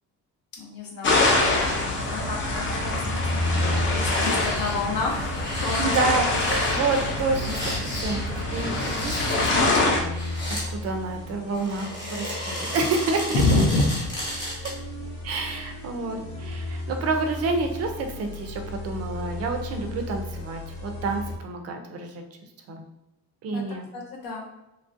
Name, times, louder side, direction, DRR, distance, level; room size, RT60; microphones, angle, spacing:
voice 1, 0.6-1.2 1.5-3.6 3.9-6.1 13.3-13.9 15.3-15.7 23.5-23.6 23.9-24.5, left 2 dB, 65° left, -1 dB, 0.7 m, -28 dB
sound 1, 1.0-10.0, left 2 dB, 30° left, 0.5 m, -25 dB
sound 2, 2.6-21.4, left 1 dB, 85° left, 1.1 m, -34 dB
sound 3, 3.8-4.8 5.2-10.7 11.5-14.9 15.2-15.3, equal, 10° left, 1.0 m, -34 dB
voice 2, 5.8-10.3 10.7-13.4 14.6-14.7 15.2-22.2 22.7-22.8 23.4-23.9, right 3 dB, 45° right, 4 dB, 0.4 m, -29 dB
3.1 x 2.4 x 2.5 m, 0.95 s
cardioid pair, 160°, 37 cm